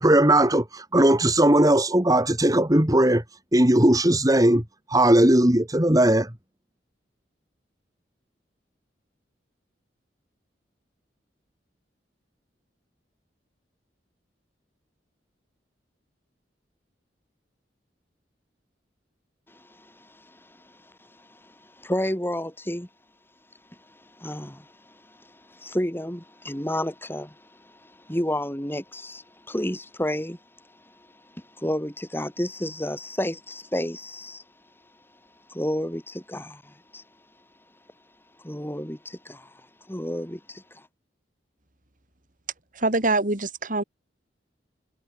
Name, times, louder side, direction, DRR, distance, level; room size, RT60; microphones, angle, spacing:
voice 1, 0.0-3.2 3.5-4.6 4.9-6.3, right 1 dB, 20° right, 2.8 m, -18 dB
voice 2, 19.5-22.9 23.7-34.4 35.5-37.0 38.4-39.6 39.9-40.9, left 1 dB, 15° left, 6.2 m, -32 dB
voice 3, 42.8-43.8, right 2 dB, 50° right, 3.6 m, -24 dB
head